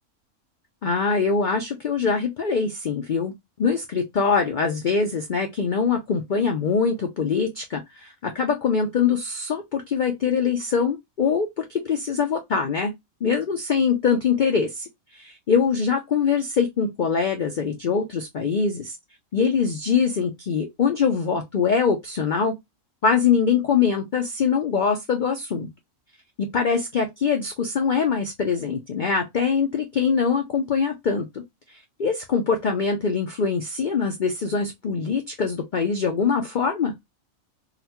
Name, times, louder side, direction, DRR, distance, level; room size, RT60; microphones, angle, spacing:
voice 1, 0.8-3.3 3.6-12.9 13.2-19.0 19.3-22.5 23.0-25.7 26.4-31.4 31.7-36.9, left 6 dB, 75° left, 0.4 m, -23 dB
3.9 x 2.1 x 2.8 m
omnidirectional pair, 1.5 m